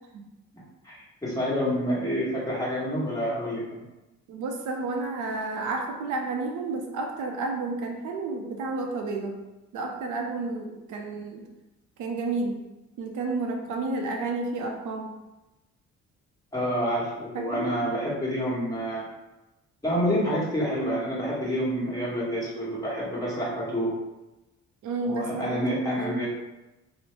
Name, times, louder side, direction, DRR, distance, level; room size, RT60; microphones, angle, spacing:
voice 1, 0.8-3.8 16.5-19.0 19.8-23.9 25.0-26.3, equal, 10° left, -7 dB, 1.1 m, -28 dB
voice 2, 4.3-9.4 9.7-11.5 12.0-12.6 13.0-15.1 17.3-17.7 24.8-26.2, right 3 dB, 80° right, 2 dB, 0.5 m, -31 dB
2.9 x 2.0 x 3.1 m, 1.0 s
cardioid pair, 90°, 30 cm